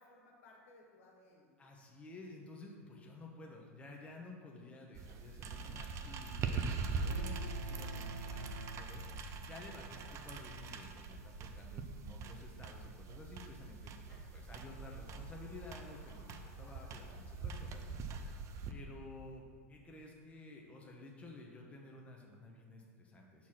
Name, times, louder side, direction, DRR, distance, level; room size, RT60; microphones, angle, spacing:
voice 1, 0.0-1.5 9.9-10.2 14.1-14.4 16.6-16.9, left 2 dB, 70° left, -2 dB, 1.6 m, -62 dB
voice 2, 1.6-9.0 9.5-17.9 18.7-19.4 19.7-23.5, left 2 dB, 15° left, -1 dB, 1.0 m, -53 dB
sound 1, 4.9-18.7, right 4 dB, 40° right, 0.5 m, -43 dB
sound 2, 7.0-9.5, right 2 dB, 90° right, 0.5 m, -47 dB
sound 3, 14.0-19.2, left 1 dB, 30° left, 1.8 m, -66 dB
6.0 x 4.4 x 5.9 m, 2.1 s
hypercardioid pair, 90°, 8 cm